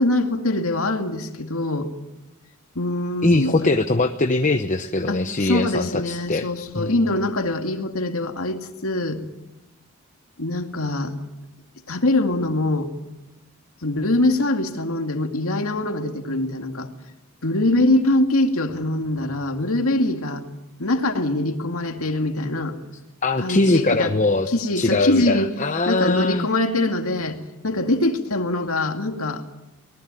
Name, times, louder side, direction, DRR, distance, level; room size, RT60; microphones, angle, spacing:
voice 1, 0.0-1.9 2.8-3.6 5.1-9.2 10.4-11.1 11.9-12.9 13.8-16.9 17.4-20.4 20.8-22.8 23.4-24.1 24.5-25.5 25.9-27.4 27.6-29.4, left 2 dB, 75° left, 5 dB, 2.3 m, -23 dB
voice 2, 3.2-6.5 6.7-7.2 23.2-24.5 24.8-26.5, left 2 dB, 35° left, 7 dB, 0.9 m, -21 dB
25.0 x 18.5 x 9.1 m, 0.99 s
head